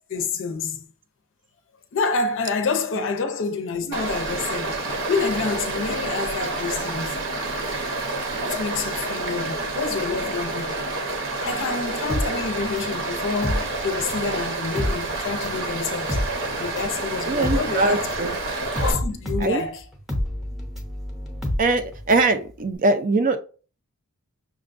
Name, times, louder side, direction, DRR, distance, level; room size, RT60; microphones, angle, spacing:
voice 1, 0.1-0.8 1.9-7.2 8.4-10.9 11.3-16.3 16.6-18.1 18.8-19.8, left 4 dB, 60° left, 0.5 m, -28 dB
Stream, 3.9-18.9, right 2 dB, 60° right, 0.8 m, -28 dB
sound 1, 12.1-14.3 14.6-22.3 22.6-22.7, left 1 dB, ahead, 0.7 m, -28 dB
voice 2, 17.3-18.3 19.4-19.6 21.6-23.4, right 3 dB, 40° right, 0.4 m, -22 dB
5.9 x 2.2 x 2.5 m
head